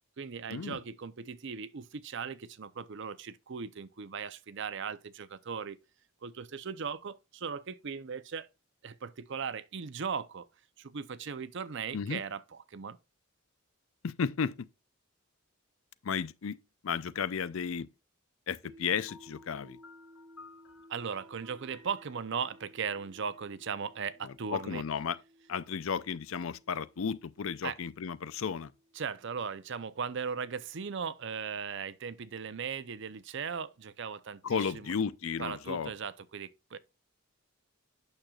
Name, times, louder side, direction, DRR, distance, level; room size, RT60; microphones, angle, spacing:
voice 1, 0.2-5.8 6.2-8.5 8.8-10.5 10.8-12.4 12.7-13.0 20.9-24.8 27.6-27.8 28.9-34.9 35.4-36.8, right 6 dB, 60° right, 0.6 m, -38 dB
voice 2, 14.0-14.7 16.0-16.6 16.8-17.9 18.5-19.8 24.2-25.2 25.5-28.7 34.4-35.9, left 6 dB, 70° left, 0.5 m, -34 dB
sound 1, 18.6-30.7, equal, 15° right, 1.2 m, -59 dB
Piano, 19.1-23.9, left 3 dB, 90° left, 2.9 m, -58 dB
8.8 x 6.5 x 2.3 m
head